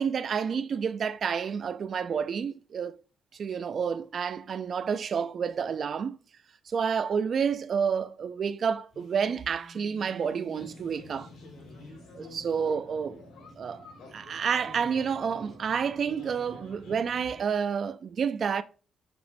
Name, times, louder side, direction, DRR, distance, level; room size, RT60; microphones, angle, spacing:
voice 1, 0.0-3.0 3.3-6.2 6.7-11.3 12.1-13.2 13.6-13.9 14.1-18.6, right 6 dB, 50° right, 0.3 m, -29 dB
Telephone, 8.9-12.0, left 3 dB, 55° left, 1.1 m, -52 dB
sound 1, 10.5-17.5, left 2 dB, 85° left, 1.8 m, -48 dB
6.1 x 3.0 x 2.6 m
cardioid pair, 115°, 0 cm